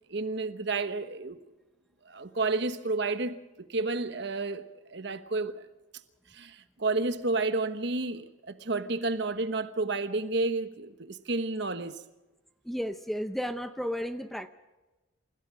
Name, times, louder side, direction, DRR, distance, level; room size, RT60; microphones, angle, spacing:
voice 1, 0.1-1.4 2.0-3.4 3.7-4.6 4.9-5.6 6.3-12.0, right 3 dB, 55° right, 1.2 m, -31 dB
voice 2, 12.6-14.5, equal, ahead, 0.7 m, -33 dB
28.5 x 16.0 x 6.3 m
head